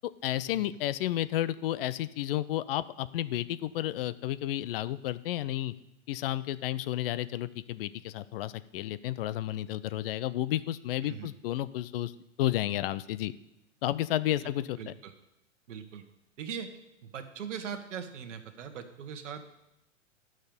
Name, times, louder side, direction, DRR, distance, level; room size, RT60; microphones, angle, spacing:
voice 1, 0.2-5.7 6.1-12.1 12.4-13.3 13.8-14.9, left 13 dB, 50° left, 16 dB, 0.5 m, -32 dB
voice 2, 14.8-15.1 15.7-16.0 16.4-16.7 17.0-19.5, right 7 dB, 65° right, 8 dB, 1.4 m, -40 dB
11.5 x 6.5 x 5.2 m, 0.86 s
hypercardioid pair, 110°, 38 cm